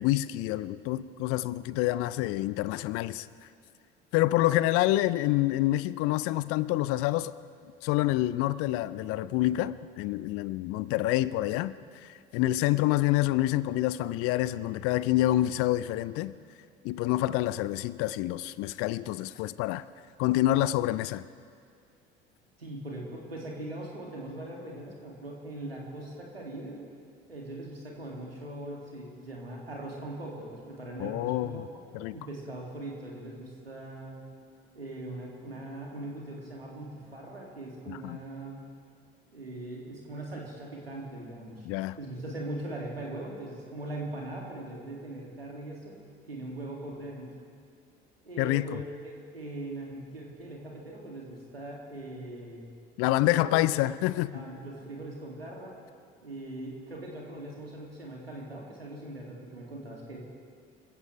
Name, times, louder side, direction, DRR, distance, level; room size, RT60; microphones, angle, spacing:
voice 1, 0.0-3.3 4.1-7.3 7.8-11.7 12.0-16.3 16.8-19.8 20.2-21.2 31.0-31.6 31.9-32.2 37.9-38.2 41.7-42.0 48.4-48.8 53.0-54.4, left 16 dB, 50° left, 0.6 m, -27 dB
voice 2, 22.6-26.9 27.3-31.8 32.1-34.2 34.7-38.6 39.3-41.7 42.0-45.9 46.3-47.3 48.2-52.6 53.0-53.6 54.3-55.7 56.2-60.2, right 1 dB, 85° right, 2.5 m, -40 dB
27.0 x 15.5 x 3.3 m
figure-of-eight pair, 60°, 29 cm